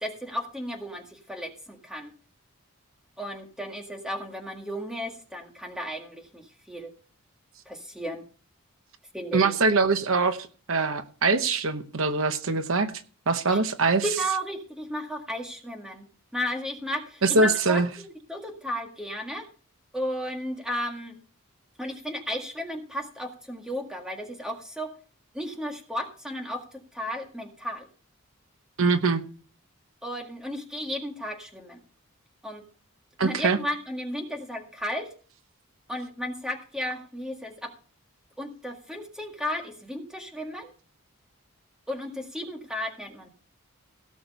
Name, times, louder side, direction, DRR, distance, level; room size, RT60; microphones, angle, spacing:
voice 1, 0.0-2.1 3.2-6.9 7.7-8.2 9.1-9.5 13.5-13.6 14.0-16.1 16.3-17.8 18.3-19.5 19.9-21.2 21.8-24.9 25.3-26.6 26.9-27.9 30.0-31.8 32.4-32.6 33.2-35.1 35.9-37.7 38.4-40.7 41.9-43.3, equal, 5° right, 3 dB, 1.8 m, -34 dB
voice 2, 9.3-12.9 13.3-14.1 17.2-17.9 28.8-29.2 33.2-33.6, right 3 dB, 65° right, 10 dB, 0.9 m, -23 dB
17.0 x 6.5 x 5.3 m, 0.40 s
head